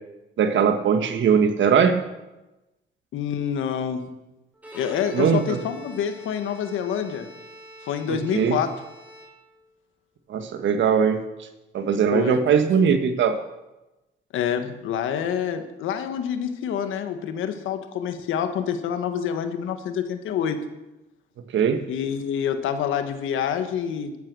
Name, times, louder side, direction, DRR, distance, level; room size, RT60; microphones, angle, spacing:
voice 1, 0.4-2.0 5.1-5.6 8.1-8.6 10.3-11.2 11.7-13.4 21.5-21.8, right 7 dB, 70° right, 8 dB, 1.6 m, -20 dB
voice 2, 3.1-4.0 4.7-7.3 7.8-8.7 12.1-12.4 14.3-20.6 21.9-24.2, left 8 dB, 85° left, 8 dB, 1.5 m, -27 dB
Bowed string instrument, 4.5-9.8, equal, 5° right, 4.7 m, -45 dB
12.5 x 12.0 x 6.3 m, 1.0 s
cardioid pair, 90°, 20 cm